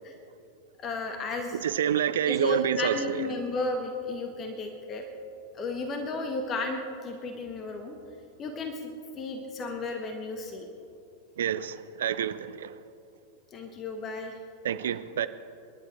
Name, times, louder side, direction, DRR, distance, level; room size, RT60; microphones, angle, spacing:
voice 1, 0.8-1.6 2.3-5.0 5.5-8.0 8.4-10.7 13.5-14.4, left 2 dB, 30° left, 4 dB, 1.5 m, -33 dB
voice 2, 1.5-3.3 11.4-12.8 14.6-15.3, right 9 dB, 60° right, 12 dB, 0.6 m, -28 dB
28.5 x 11.0 x 3.7 m, 2.6 s
figure-of-eight pair, 90°, 0 cm